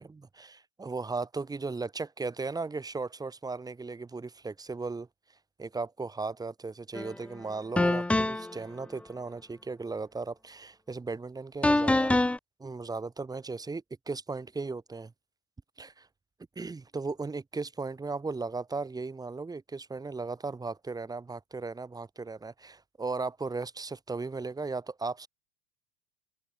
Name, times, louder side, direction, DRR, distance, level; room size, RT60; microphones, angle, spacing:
voice 1, 0.0-5.1 5.6-12.1 12.6-15.1 15.8-16.1 16.6-25.3, right 3 dB, 10° right, 4.1 m, -36 dB
sound 1, 7.0-7.1 7.8-8.6 11.6-12.4, left 2 dB, 5° left, 0.7 m, -25 dB
open air
supercardioid pair, 130°, 32 cm